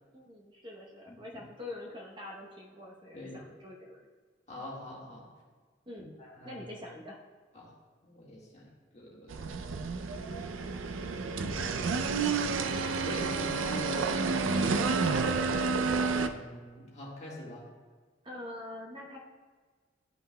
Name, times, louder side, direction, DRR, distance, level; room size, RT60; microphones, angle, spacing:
voice 1, 0.1-4.0 5.9-6.1 6.4-7.2 15.1-15.3 15.9-16.1 18.2-19.2, left 1 dB, 25° right, -1 dB, 0.9 m, -44 dB
voice 2, 3.1-3.5 4.5-5.2 6.2-6.7 7.5-7.7 8.0-9.5 11.4-12.2 13.0-14.5 15.0-15.3 16.0-17.6, left 1 dB, 35° left, -4 dB, 1.7 m, -44 dB
sound 1, 9.3-16.3, right 4 dB, 80° right, 0.4 m, -30 dB
11.5 x 5.5 x 2.2 m, 1.5 s
head